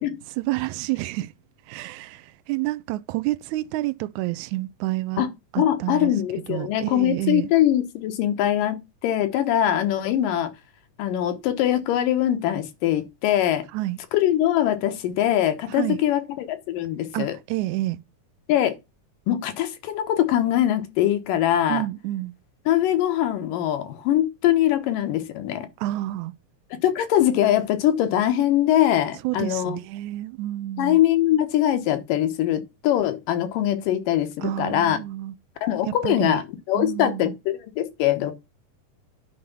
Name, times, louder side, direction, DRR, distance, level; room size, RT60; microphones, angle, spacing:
voice 1, 0.4-1.3 1.7-5.3 5.5-7.5 13.7-14.0 15.7-16.0 17.1-18.0 21.7-22.3 25.8-26.3 29.2-31.0 34.4-35.4 36.0-36.4 36.7-37.4, right 17 dB, 80° right, 1.9 m, -29 dB
voice 2, 5.6-10.5 11.0-13.6 14.1-17.3 18.5-18.8 19.3-21.8 22.7-25.7 26.7-29.8 30.8-35.0 35.6-38.3, left 12 dB, 90° left, 2.8 m, -22 dB
9.5 x 3.5 x 6.9 m
omnidirectional pair, 3.7 m